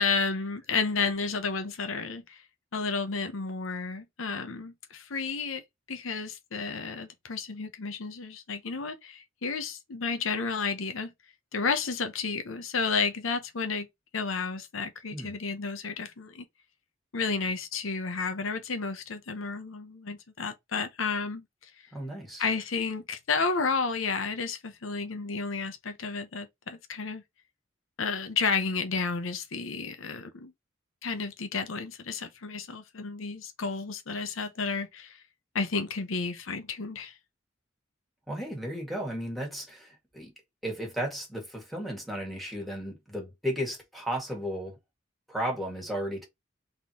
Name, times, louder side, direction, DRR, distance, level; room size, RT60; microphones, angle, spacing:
voice 1, 0.0-2.4 2.7-5.6 5.9-11.1 11.5-13.9 14.1-16.4 17.1-21.4 22.4-27.2 28.0-30.5 31.0-35.2 35.5-37.1, left 4 dB, 85° left, 0.8 m, -31 dB
voice 2, 21.9-22.4 38.3-40.3 40.6-44.8 45.3-46.3, equal, ahead, 2.0 m, -34 dB
3.8 x 3.6 x 3.0 m
head